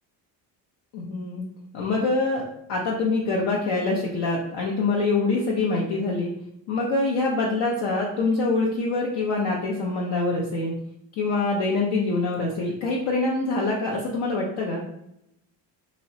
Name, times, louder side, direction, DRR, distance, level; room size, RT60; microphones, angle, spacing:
voice 1, 0.9-1.4 1.7-2.4 2.7-6.3 6.7-10.7 11.2-14.8, left 3 dB, 65° left, -3 dB, 0.7 m, -25 dB
3.0 x 2.9 x 2.7 m, 0.79 s
cardioid pair, 130°, 44 cm